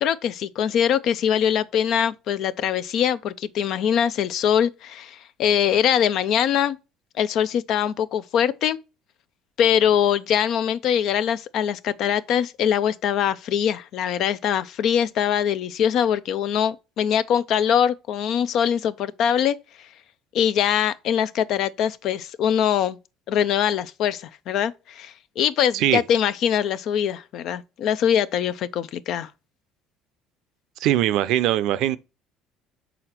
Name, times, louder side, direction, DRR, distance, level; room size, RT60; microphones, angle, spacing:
voice 1, 0.0-6.8 7.2-8.8 9.6-19.6 20.3-23.0 23.3-29.3, left 9 dB, 65° left, 0.5 m, -22 dB
voice 2, 30.8-32.0, right 13 dB, 70° right, 0.5 m, -21 dB
6.3 x 3.9 x 4.3 m
supercardioid pair, 75°, 0 cm